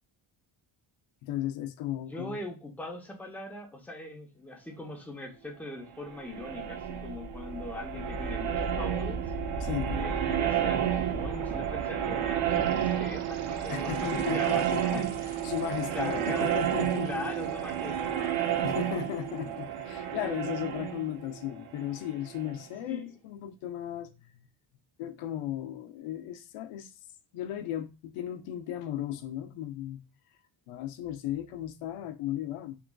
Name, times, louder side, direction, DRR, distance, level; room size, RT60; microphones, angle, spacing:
voice 1, 1.2-2.4 9.6-9.9 13.7-15.0 15.4-17.1 18.6-24.1 25.0-26.9 27.3-30.0 30.7-32.8, left 11 dB, 90° left, 0.6 m, -35 dB
voice 2, 2.1-9.3 9.9-15.4 15.7-16.6 17.0-18.6 20.2-20.3 22.9-23.1, left 2 dB, 5° left, 0.6 m, -41 dB
sound 1, 6.0-22.6, right 9 dB, 90° right, 0.6 m, -31 dB
3.1 x 2.3 x 2.2 m
cardioid pair, 100°, 49 cm